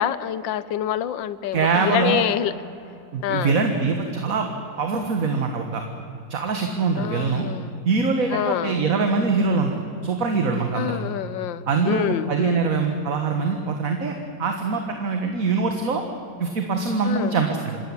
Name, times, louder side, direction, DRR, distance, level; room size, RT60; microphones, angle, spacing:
voice 1, 0.0-2.5 3.2-3.6 7.0-7.8 8.3-8.8 10.7-12.7 17.0-17.4, left 10 dB, 90° left, 16 dB, 1.5 m, -26 dB
voice 2, 1.5-2.2 3.1-4.5 4.8-5.8 6.3-7.5 7.9-11.0 11.7-16.0 16.4-17.8, right 4 dB, 50° right, 4 dB, 1.8 m, -23 dB
26.5 x 13.5 x 9.7 m, 2.6 s
omnidirectional pair, 2.0 m